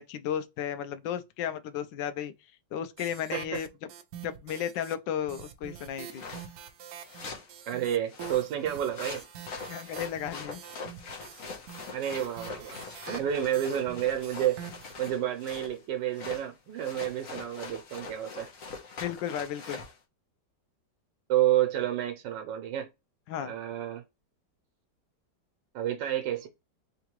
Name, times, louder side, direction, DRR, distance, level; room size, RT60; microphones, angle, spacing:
voice 1, 0.0-2.3 2.7-3.7 4.2-6.3 9.7-10.6 19.0-19.8 23.3-23.5, left 9 dB, 90° left, 1.3 m, -34 dB
sound 1, 3.0-4.9 5.3-15.1, right 9 dB, 70° right, 1.0 m, -46 dB
voice 2, 3.3-3.6 7.7-9.2 11.9-12.8 13.1-14.6 15.0-18.5 21.3-22.9 23.4-24.0 25.7-26.5, right 11 dB, 85° right, 1.4 m, -30 dB
sound 2, 6.1-6.5 7.1-7.5 8.1-15.8 16.1-16.5 16.8-20.0, left 4 dB, 55° left, 1.4 m, -43 dB
3.7 x 3.6 x 3.0 m
omnidirectional pair, 1.9 m